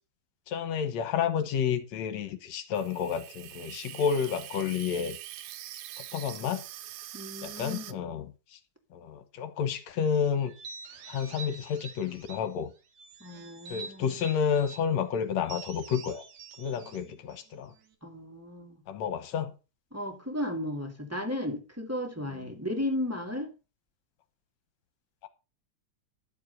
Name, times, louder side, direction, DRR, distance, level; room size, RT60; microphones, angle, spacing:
voice 1, 0.5-5.2 6.0-6.6 7.4-8.6 8.9-10.5 11.1-12.7 13.7-16.2 16.6-17.7 18.9-19.5 25.2-25.3, left 7 dB, 75° left, 2.3 m, -30 dB
Water tap faucet / Sink (filling or washing), 2.8-7.9, right 14 dB, 90° right, 2.2 m, -44 dB
voice 2, 7.1-8.0 13.2-14.2 18.0-18.8 19.9-23.5, left 1 dB, 5° right, 1.8 m, -34 dB
sound 1, 10.4-12.5 12.9-14.8 15.4-17.9, right 5 dB, 65° right, 2.6 m, -46 dB
11.5 x 7.4 x 5.6 m
omnidirectional pair, 3.3 m